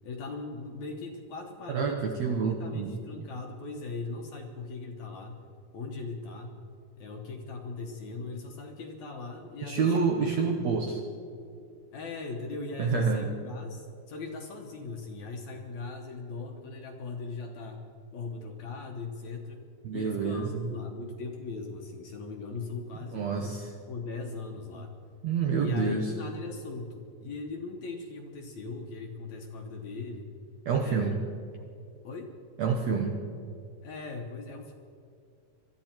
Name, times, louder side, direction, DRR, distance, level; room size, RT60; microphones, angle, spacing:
voice 1, 0.0-2.1 2.4-5.4 5.7-6.6 7.0-10.1 10.4-10.7 11.9-17.8 18.1-19.6 19.9-23.6 23.9-24.9 25.6-30.3 30.8-31.1 32.0-32.3 33.8-34.7, left 3 dB, 65° left, 3 dB, 2.0 m, -39 dB
voice 2, 1.7-3.0 9.7-11.0 12.8-13.2 19.8-20.7 23.1-23.7 25.2-26.1 30.7-31.2 32.6-33.2, right 5 dB, 70° right, 2 dB, 1.7 m, -28 dB
22.0 x 13.0 x 4.4 m, 2.4 s
omnidirectional pair, 4.3 m